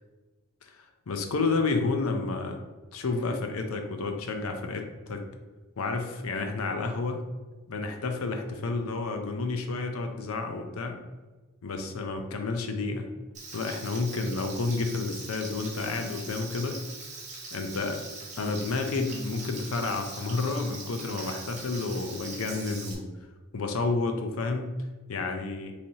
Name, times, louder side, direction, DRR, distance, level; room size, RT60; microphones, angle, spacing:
voice 1, 0.6-2.6 2.9-5.2 5.8-7.2 7.7-11.0 11.6-13.1 13.5-16.8 17.5-18.0 18.4-23.1 23.5-24.7 25.1-25.7, left 3 dB, 85° left, 5 dB, 0.6 m, -30 dB
Frying (food), 13.3-22.9, right 3 dB, 35° right, 0.9 m, -42 dB
5.3 x 3.3 x 2.8 m, 1.2 s
head